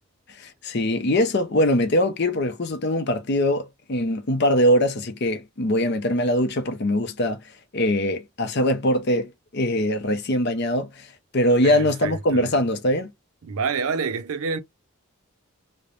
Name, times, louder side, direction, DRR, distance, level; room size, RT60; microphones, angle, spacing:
voice 1, 0.4-7.4 7.7-11.1 11.3-13.1, left 1 dB, 50° left, 0.5 m, -22 dB
voice 2, 11.6-12.5 13.4-14.6, right 5 dB, 70° right, 0.5 m, -28 dB
3.1 x 2.1 x 2.4 m
head